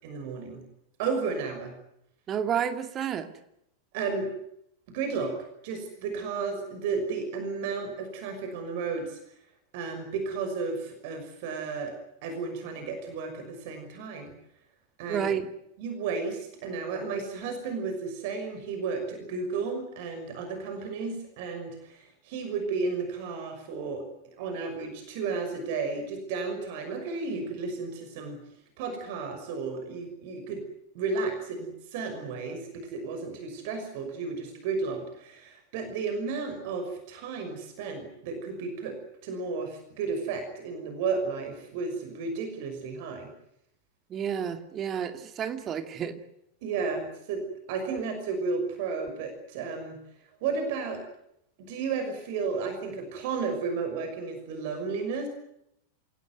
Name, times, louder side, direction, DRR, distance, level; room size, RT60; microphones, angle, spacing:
voice 1, 0.0-0.6 1.0-1.7 3.9-4.3 4.9-5.4 5.6-9.2 9.7-11.9 12.2-14.3 15.0-15.3 15.8-28.4 28.8-30.6 30.9-43.3 46.6-50.0 50.4-51.0 51.6-55.3, right 4 dB, 50° right, 6 dB, 6.0 m, -33 dB
voice 2, 2.3-3.3 15.1-15.4 44.1-46.2, right 8 dB, 30° right, 8 dB, 2.5 m, -30 dB
27.5 x 17.5 x 9.6 m, 0.78 s
figure-of-eight pair, 90°, 0 cm